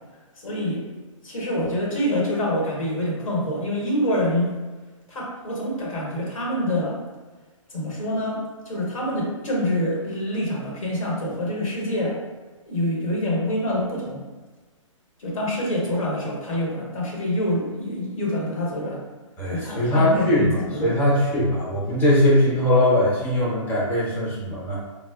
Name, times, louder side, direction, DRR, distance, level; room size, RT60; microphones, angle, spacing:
voice 1, 0.4-0.9 1.2-4.5 5.1-7.0 7.7-12.2 12.7-14.2 15.2-19.0 19.5-20.9, left 1 dB, 80° left, -3 dB, 1.1 m, -26 dB
voice 2, 19.4-24.8, left 1 dB, 10° left, -7 dB, 0.7 m, -21 dB
3.9 x 2.1 x 2.3 m, 1.3 s
hypercardioid pair, 140°, 17 cm